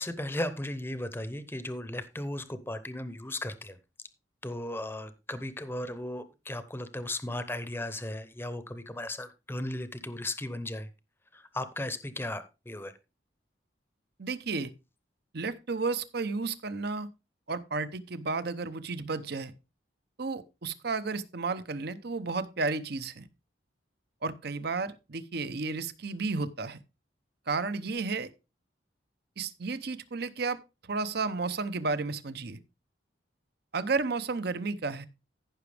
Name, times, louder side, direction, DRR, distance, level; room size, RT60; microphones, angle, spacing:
voice 1, 0.0-3.8 4.4-10.9 11.3-12.9, left 1 dB, 10° left, 0.7 m, -36 dB
voice 2, 14.2-14.7 15.3-17.1 17.5-19.5 20.2-23.3 24.2-26.8 27.5-28.3 29.4-32.6 33.7-35.1, right 4 dB, 55° right, 0.8 m, -32 dB
14.5 x 6.0 x 3.4 m
head